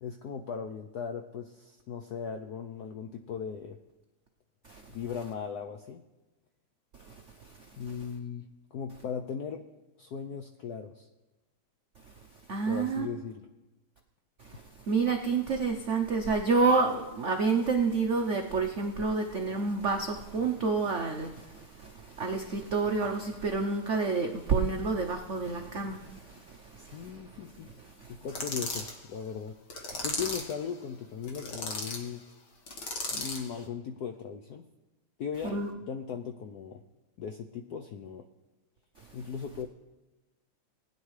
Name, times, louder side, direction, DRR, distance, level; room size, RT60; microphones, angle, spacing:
voice 1, 0.0-3.8 4.9-6.0 7.8-9.7 10.0-11.1 12.6-13.5 26.8-27.7 28.1-29.5 30.0-32.2 33.1-34.7 35.2-36.8 37.2-38.3 39.1-39.7, left 7 dB, 80° left, 5 dB, 0.8 m, -38 dB
voice 2, 12.5-13.1 14.9-27.2 28.0-28.1 35.5-35.7, right 4 dB, 75° right, 3 dB, 0.6 m, -29 dB
sound 1, 28.3-29.0 29.7-30.6 31.2-32.0 32.7-33.5, left 3 dB, 55° left, 2.0 m, -35 dB
20.0 x 9.7 x 3.2 m, 1.1 s
omnidirectional pair, 2.4 m